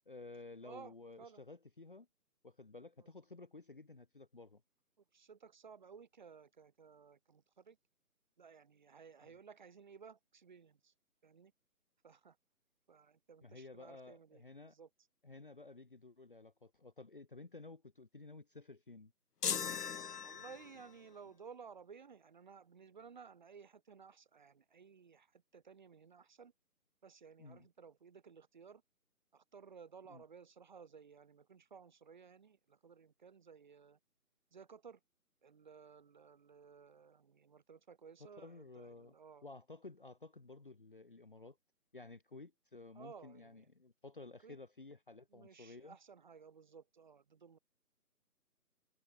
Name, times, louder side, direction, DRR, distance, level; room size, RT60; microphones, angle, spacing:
voice 1, 0.1-2.1 2.4-4.6 13.4-14.7 15.2-19.1 27.4-27.7 30.1-30.2 38.2-39.1 39.4-41.6 41.9-46.0, left 3 dB, 35° left, 1.0 m, -53 dB
voice 2, 0.6-1.4 3.0-3.1 5.1-7.8 8.4-10.9 11.2-11.5 12.0-12.4 12.9-14.9 20.2-26.5 27.0-28.8 29.3-34.0 34.5-35.0 35.4-39.5 42.9-43.7 44.4-44.6 45.3-47.6, right 6 dB, 30° right, 3.9 m, -57 dB
sound 1, 19.4-20.9, left 7 dB, 80° left, 0.9 m, -39 dB
figure-of-eight pair, 170°, 46 cm